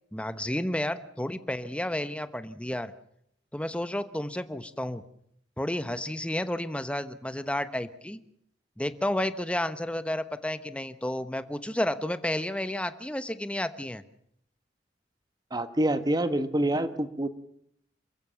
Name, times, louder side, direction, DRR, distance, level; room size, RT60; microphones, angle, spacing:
voice 1, 0.1-2.9 3.5-5.0 5.6-8.2 8.8-14.0, left 1 dB, 5° left, 12 dB, 1.1 m, -31 dB
voice 2, 15.5-17.3, right 1 dB, 20° right, 11 dB, 1.5 m, -26 dB
28.0 x 15.5 x 7.1 m, 0.73 s
head